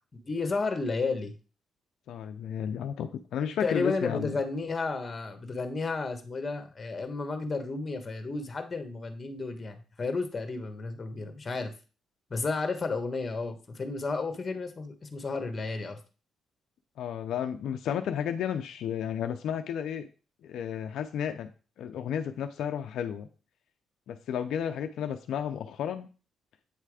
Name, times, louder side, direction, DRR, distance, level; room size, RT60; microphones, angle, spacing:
voice 1, 0.3-1.3 3.6-11.7 12.3-16.0, left 3 dB, 30° left, 7 dB, 1.3 m, -32 dB
voice 2, 2.1-4.4 17.0-20.1 20.4-21.5 21.8-23.3 24.1-26.1, left 8 dB, 75° left, 7 dB, 0.5 m, -32 dB
8.6 x 3.3 x 4.8 m, 0.35 s
cardioid pair, 90°, 0 cm